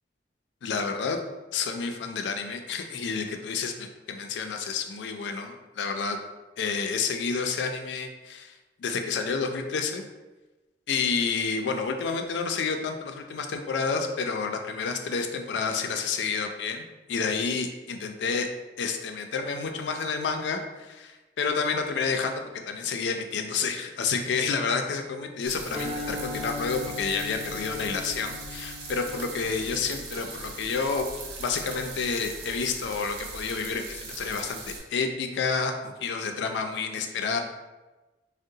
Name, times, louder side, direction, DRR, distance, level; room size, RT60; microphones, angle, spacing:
voice 1, 0.6-1.2 1.5-6.2 6.6-10.0 10.9-16.8 17.1-18.5 18.8-31.1 31.4-37.4, left 5 dB, 85° left, 5 dB, 0.3 m, -29 dB
sound 1, 25.5-34.8, right 3 dB, 65° right, 0.6 m, -40 dB
sound 2, 25.7-32.1, left 3 dB, ahead, 0.6 m, -40 dB
3.7 x 2.0 x 2.6 m, 1.1 s
head